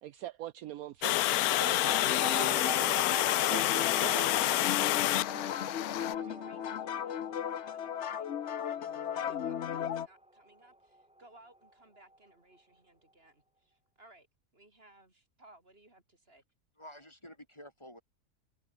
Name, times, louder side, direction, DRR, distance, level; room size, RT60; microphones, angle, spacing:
voice 1, 0.0-4.3, right 13 dB, 70° right, 1.1 m, -43 dB
Water, 1.0-6.1, left 15 dB, 75° left, 1.0 m, -28 dB
sound 1, 1.3-12.3, right 1 dB, 10° right, 0.4 m, -45 dB
sound 2, 1.8-10.1, left 9 dB, 50° left, 1.0 m, -36 dB
voice 2, 3.6-14.3 14.5-16.4, right 2 dB, 40° right, 4.1 m, -61 dB
voice 3, 16.8-18.0, equal, 15° left, 4.7 m, -50 dB
omnidirectional pair, 1.6 m